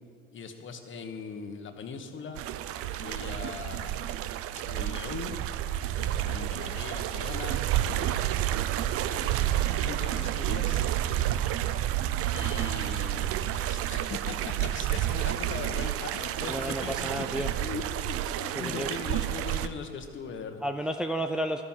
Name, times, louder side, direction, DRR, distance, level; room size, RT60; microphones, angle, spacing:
voice 1, 0.3-2.4 2.8-4.1 4.5-8.6 9.1-10.9 11.2-11.3 12.3-17.2 17.6-20.6, left 5 dB, 40° left, 6 dB, 1.5 m, -40 dB
sound 1, 2.4-19.7, right 12 dB, 50° right, 0.6 m, -30 dB
voice 2, 16.5-17.5 18.6-18.9 20.6-21.6, right 1 dB, 5° right, 5 dB, 0.5 m, -31 dB
12.5 x 10.5 x 5.8 m, 2.2 s
supercardioid pair, 90°, 30 cm